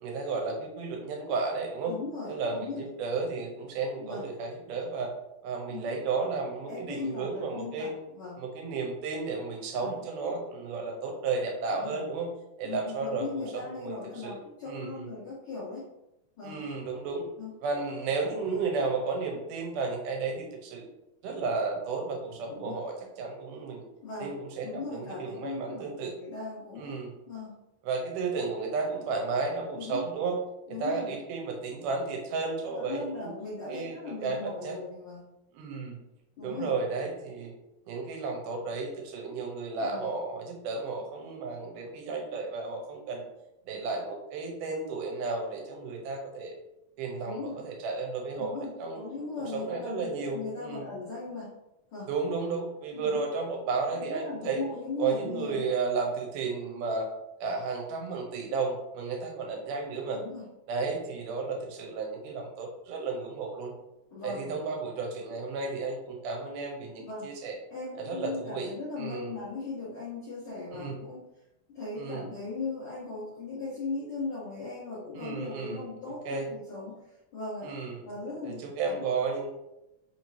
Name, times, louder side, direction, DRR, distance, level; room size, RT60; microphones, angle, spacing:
voice 1, 0.0-1.9 2.3-5.1 5.4-7.9 8.4-12.3 12.6-14.3 14.6-15.1 16.4-17.3 17.6-20.9 21.2-23.8 24.2-26.1 26.8-27.1 27.8-30.4 30.7-33.3 33.7-34.0 34.2-34.8 35.5-36.0 36.4-37.5 37.9-43.3 43.7-46.6 47.0-49.0 49.4-50.9 52.1-54.6 55.0-57.1 57.4-60.2 60.7-63.7 64.2-67.6 68.0-68.7 69.0-69.3 70.7-71.0 72.0-72.2 75.1-75.8 76.3-76.5 77.6-78.1 78.4-79.5, right 4 dB, 90° right, 1 dB, 2.3 m, -33 dB
voice 2, 1.9-2.9 4.0-4.2 5.7-6.0 6.7-8.4 9.7-10.0 11.7-12.0 12.6-15.8 16.4-16.6 17.4-17.5 22.5-22.7 24.0-24.3 24.6-26.9 27.3-27.5 29.7-30.0 30.7-31.2 32.7-35.2 36.4-36.7 39.8-40.1 47.3-47.6 48.4-51.5 51.9-52.1 52.9-53.2 53.9-55.7 60.1-60.4 64.1-64.5 67.0-67.3 67.7-71.2 71.7-76.9 77.3-77.7 78.0-79.1, left 3 dB, 75° left, -8 dB, 1.2 m, -38 dB
4.9 x 3.0 x 2.7 m, 0.91 s
omnidirectional pair, 3.7 m